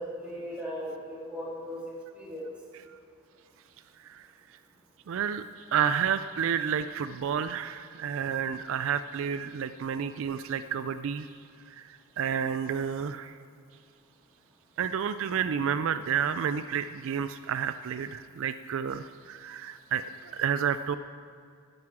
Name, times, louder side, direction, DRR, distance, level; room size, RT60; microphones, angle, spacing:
voice 1, 0.0-1.8 2.1-2.5, equal, 5° right, -7 dB, 3.2 m, -37 dB
voice 2, 5.1-11.3 11.7-13.3 14.8-21.0, right 7 dB, 65° right, 11 dB, 0.4 m, -30 dB
9.6 x 9.3 x 7.5 m, 2.4 s
head